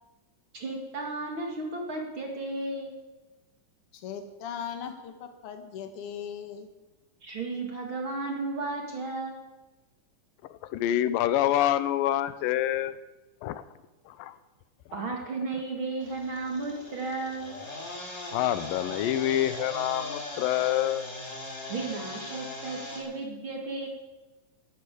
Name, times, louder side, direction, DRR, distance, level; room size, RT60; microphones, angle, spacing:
voice 1, 0.5-2.9 7.2-9.4 14.9-17.6 21.7-23.9, right 3 dB, 40° right, 1 dB, 2.4 m, -34 dB
voice 2, 3.9-6.7, left 8 dB, 50° left, 6 dB, 2.0 m, -38 dB
voice 3, 10.5-13.0 13.4-13.6 14.1-14.4 18.3-21.0, left 12 dB, 80° left, 13 dB, 2.4 m, -27 dB
sound 1, 16.0-23.0, left 2 dB, 25° left, 2.9 m, -39 dB
11.5 x 11.0 x 8.3 m, 1.1 s
omnidirectional pair, 4.0 m